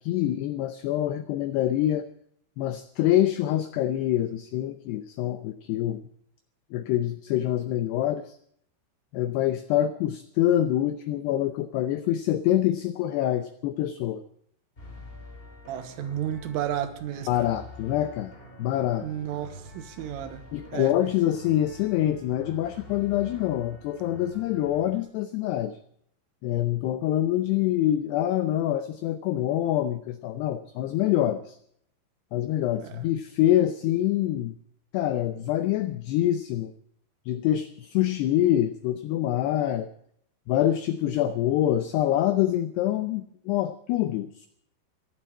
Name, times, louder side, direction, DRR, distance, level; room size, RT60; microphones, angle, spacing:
voice 1, 0.0-2.1 2.6-6.0 6.7-8.4 9.1-14.2 17.3-18.3 18.6-19.1 20.5-25.8 26.4-31.6 32.3-34.6 34.9-36.7 37.3-39.9 40.5-44.5, left 12 dB, 90° left, 11 dB, 2.3 m, -25 dB
sound 1, 14.8-25.0, left 1 dB, 15° left, 2.3 m, -46 dB
voice 2, 15.7-17.3 19.0-20.4 20.7-20.9 32.8-32.9, right 11 dB, 85° right, 10 dB, 3.7 m, -32 dB
14.5 x 11.0 x 8.6 m, 0.68 s
omnidirectional pair, 5.7 m